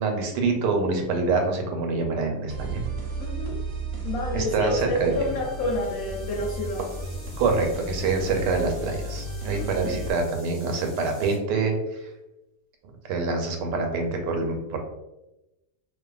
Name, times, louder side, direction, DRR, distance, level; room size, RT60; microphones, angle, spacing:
voice 1, 0.0-2.8 4.3-5.1 7.4-12.0 13.0-14.8, right 4 dB, 85° right, 3 dB, 1.2 m, -26 dB
sound 1, 2.5-10.1, right 2 dB, 65° right, 1.0 m, -34 dB
voice 2, 3.2-3.6 4.0-6.9 9.5-10.0, left 1 dB, 70° left, -3 dB, 0.8 m, -29 dB
sound 2, 5.1-11.4, left 1 dB, 25° left, 0.6 m, -49 dB
2.6 x 2.4 x 2.3 m, 0.97 s
omnidirectional pair, 1.8 m